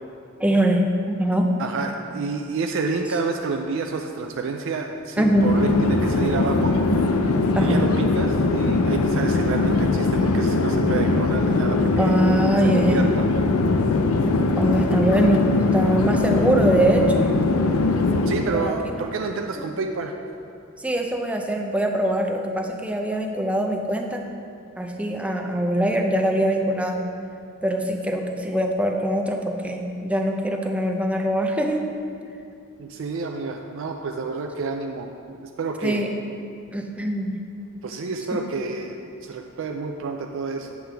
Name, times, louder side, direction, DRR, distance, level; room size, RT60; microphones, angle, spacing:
voice 1, 0.4-1.5 5.2-5.5 7.5-7.8 12.0-13.1 14.6-17.3 18.5-19.0 19.6-19.7 20.8-24.3 24.8-27.0 27.6-31.8 35.8-36.1 36.7-37.4 38.3-38.4, right 1 dB, 5° right, 2 dB, 0.5 m, -23 dB
voice 2, 1.6-6.8 7.6-12.1 12.5-13.3 18.3-20.1 32.8-36.1 37.8-40.7, right 4 dB, 65° right, 3 dB, 0.4 m, -29 dB
Chatter / Fixed-wing aircraft airplane, 5.2-18.6, left 3 dB, 80° left, 0.5 m, -21 dB
8.2 x 7.6 x 3.4 m, 2.5 s
head